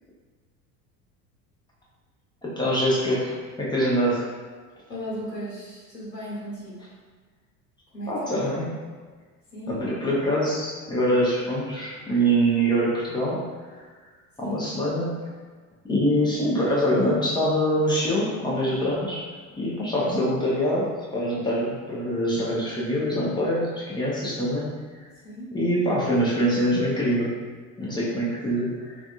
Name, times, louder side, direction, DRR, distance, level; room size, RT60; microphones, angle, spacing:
voice 1, 2.4-3.3 3.6-4.3 8.1-8.7 9.7-13.4 13.7-13.8 14.4-15.1 15.8-24.7 25.5-27.3 27.8-29.0, equal, 10° left, -7 dB, 0.6 m, -24 dB
voice 2, 4.9-6.8 7.9-8.3 9.5-9.8 14.4-14.6 25.2-25.5, equal, 85° left, -8 dB, 1.3 m, -36 dB
3.5 x 2.5 x 2.4 m, 1.5 s
figure-of-eight pair, 70°, 48 cm